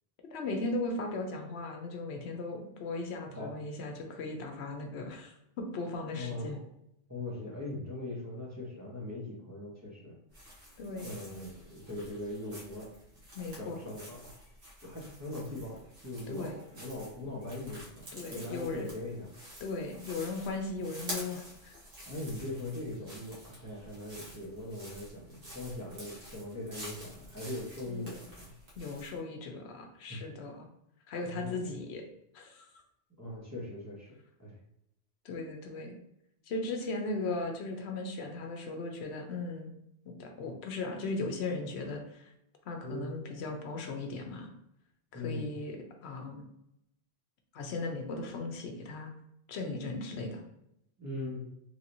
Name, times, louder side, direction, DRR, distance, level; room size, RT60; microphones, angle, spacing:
voice 1, 0.3-6.6 10.8-11.2 13.3-13.8 16.3-16.5 18.1-18.9 19.6-21.7 27.9-28.3 28.8-30.7 31.1-32.0 32.3-32.7 35.2-35.9 36.5-39.7 40.1-42.3 42.7-44.5 45.1-46.4 47.5-49.1 49.5-50.4, left 3 dB, 80° left, 3 dB, 0.9 m, -37 dB
voice 2, 6.1-6.5 7.1-10.2 11.0-12.9 13.6-14.4 14.8-18.0 18.3-19.3 22.1-28.5 30.1-30.2 31.3-31.7 33.2-34.1 34.4-34.6 42.8-43.2 45.1-45.5 51.0-51.5, left 1 dB, 15° right, -6 dB, 0.8 m, -40 dB
sound 1, 10.3-29.2, equal, 60° right, 1.4 m, -49 dB
3.2 x 2.8 x 2.6 m, 0.80 s
omnidirectional pair, 1.1 m